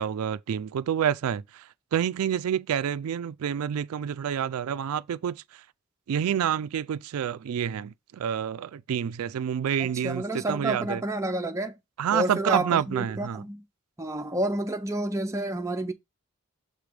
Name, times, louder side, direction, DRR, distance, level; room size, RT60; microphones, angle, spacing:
voice 1, 0.0-5.6 6.1-11.0 12.0-13.4, right 8 dB, 90° right, 0.4 m, -28 dB
voice 2, 9.8-11.8 12.1-13.6 14.0-15.9, right 1 dB, 15° right, 0.6 m, -29 dB
6.7 x 3.3 x 5.0 m
head